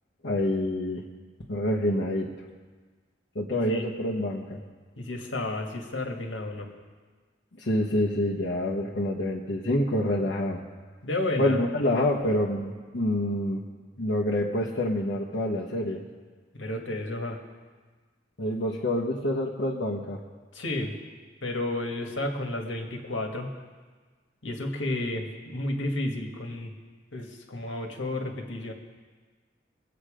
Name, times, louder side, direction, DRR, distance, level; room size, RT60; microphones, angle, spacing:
voice 1, 0.2-1.0 1.5-2.3 3.3-4.6 7.6-10.6 11.4-13.6 14.0-16.0 18.4-20.2, left 1 dB, 65° left, -4 dB, 1.2 m, -27 dB
voice 2, 5.0-6.7 11.0-11.6 16.5-17.4 20.5-20.9 21.4-23.5 24.4-26.7 27.1-28.7, left 1 dB, 85° left, 2 dB, 1.7 m, -31 dB
21.5 x 8.0 x 5.1 m, 1.4 s
head